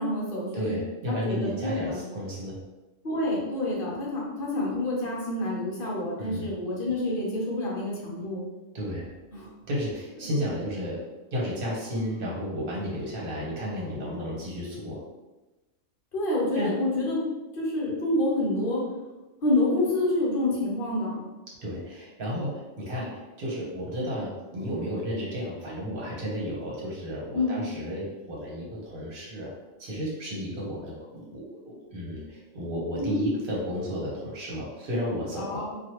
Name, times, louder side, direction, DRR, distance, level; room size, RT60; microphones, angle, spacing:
voice 1, 0.0-0.7 1.1-2.0 3.0-8.4 9.3-9.5 16.1-17.2 17.5-18.8 19.4-21.2 27.3-27.6 33.0-33.2 35.4-35.8, left 2 dB, 50° left, -4 dB, 0.9 m, -28 dB
voice 2, 0.5-2.6 6.2-6.5 8.7-9.1 9.7-11.0 11.3-15.0 16.5-16.7 21.6-29.5 29.8-35.8, equal, 45° right, -4 dB, 1.0 m, -33 dB
3.0 x 2.4 x 2.9 m, 1.1 s
omnidirectional pair, 1.4 m